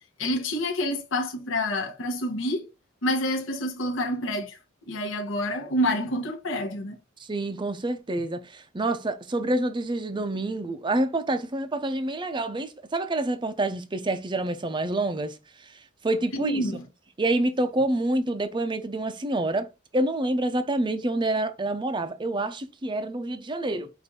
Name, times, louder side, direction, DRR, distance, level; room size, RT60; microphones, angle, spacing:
voice 1, 0.2-2.7 3.0-4.6 4.9-7.0 16.3-16.9, left 1 dB, 70° left, 1.0 m, -28 dB
voice 2, 7.2-16.7 17.2-23.9, right 2 dB, 25° right, 0.6 m, -27 dB
5.2 x 2.6 x 3.7 m
head